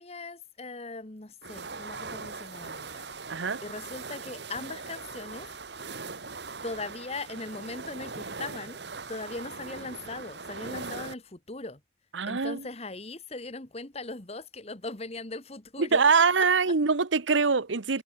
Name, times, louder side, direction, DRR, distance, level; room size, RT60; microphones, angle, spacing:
voice 1, 0.0-3.0 3.6-5.5 6.6-8.8 9.1-11.8 12.2-16.8, left 3 dB, 35° left, 1.6 m, -39 dB
sound 1, 1.4-11.1, right 4 dB, 65° right, 2.0 m, -40 dB
voice 2, 3.3-3.6 12.1-12.6 15.8-18.0, right 4 dB, 85° right, 1.1 m, -24 dB
head